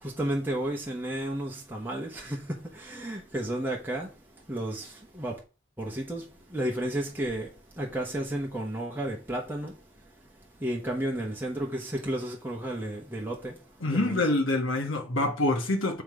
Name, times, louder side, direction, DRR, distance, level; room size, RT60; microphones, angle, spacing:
voice 1, 0.0-4.1 4.5-5.4 5.8-9.7 10.6-13.6 13.9-14.3, right 1 dB, 10° right, 1.0 m, -32 dB
voice 2, 13.8-16.0, left 2 dB, 85° left, 1.1 m, -26 dB
7.4 x 3.8 x 4.8 m
head